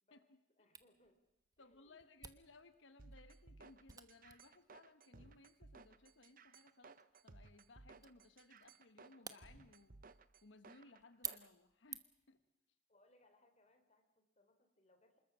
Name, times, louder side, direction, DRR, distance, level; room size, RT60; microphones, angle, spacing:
voice 1, 0.6-1.2 1.6-2.0 12.9-15.2, left 1 dB, 35° left, 6 dB, 3.8 m, -72 dB
Camera, 0.7-12.3, right 6 dB, 20° right, 1.1 m, -55 dB
voice 2, 1.6-10.0 10.4-12.4, left 3 dB, 90° left, 10 dB, 1.2 m, -63 dB
sound 1, 3.0-11.5, right 3 dB, 50° right, 0.9 m, -60 dB
26.5 x 21.0 x 6.1 m, 0.87 s
head